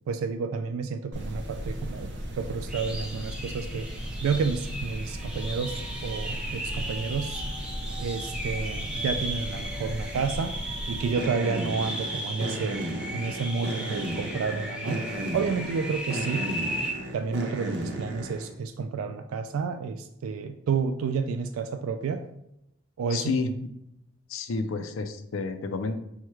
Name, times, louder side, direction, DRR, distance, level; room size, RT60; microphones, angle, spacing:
voice 1, 0.1-3.9 4.2-7.4 8.0-10.6 10.9-12.8 13.1-16.5 17.1-22.2 23.0-23.3, right 5 dB, 80° right, 8 dB, 0.3 m, -30 dB
sound 1, 1.1-18.5, right 1 dB, 55° right, 0.7 m, -35 dB
sound 2, 2.7-16.9, equal, 5° right, 0.6 m, -36 dB
voice 2, 23.1-23.5 24.3-26.0, left 4 dB, 75° left, 8 dB, 0.5 m, -30 dB
4.5 x 2.2 x 4.6 m, 0.82 s
head